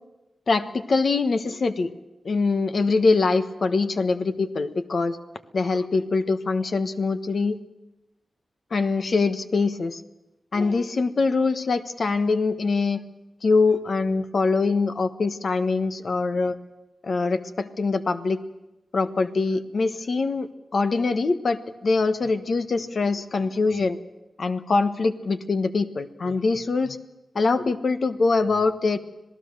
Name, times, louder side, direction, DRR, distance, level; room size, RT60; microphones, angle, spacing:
voice 1, 0.5-1.9 2.2-5.2 5.5-7.6 8.7-10.0 10.5-13.0 13.4-16.5 17.0-18.4 18.9-24.0 24.4-27.0 27.3-29.0, left 3 dB, 55° left, 9 dB, 1.2 m, -23 dB
26.5 x 18.0 x 6.7 m, 0.99 s
wide cardioid pair, 120°, 0 cm